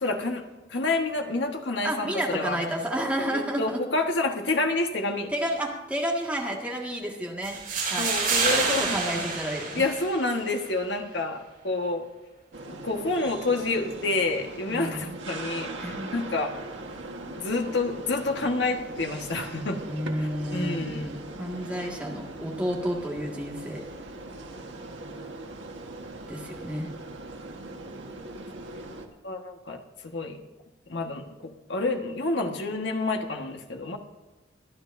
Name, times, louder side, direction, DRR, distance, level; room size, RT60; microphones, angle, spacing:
voice 1, 0.0-0.4 0.7-2.6 3.3-5.3 8.0-9.1 9.7-12.0 12.7-16.5 17.4-19.9 20.2-21.1 29.2-30.4 30.9-34.0, left 2 dB, 75° left, 3 dB, 1.5 m, -28 dB
voice 2, 1.8-3.8 5.3-7.6 7.9-8.1 8.5-9.9 14.7-15.0 15.8-16.1 19.8-23.8 26.3-26.9, equal, 5° right, -2 dB, 1.9 m, -31 dB
sound 1, 7.4-10.4, right 4 dB, 45° right, 5.3 m, -28 dB
sound 2, 12.5-29.1, right 2 dB, 90° right, 1.5 m, -40 dB
24.5 x 9.9 x 2.7 m, 1.2 s
head